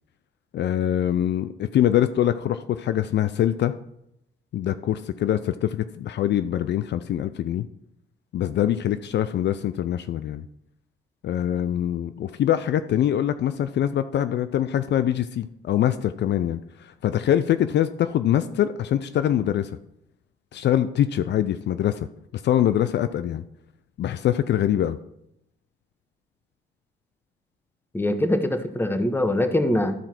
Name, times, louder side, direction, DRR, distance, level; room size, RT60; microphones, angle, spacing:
voice 1, 0.5-3.7 4.5-7.7 8.3-10.4 11.2-19.7 20.5-22.1 22.3-23.4 24.0-25.0, left 11 dB, 60° left, 12 dB, 0.5 m, -24 dB
voice 2, 27.9-29.9, left 1 dB, 10° left, 8 dB, 1.1 m, -23 dB
12.5 x 4.5 x 5.9 m, 0.78 s
cardioid pair, 90°, 20 cm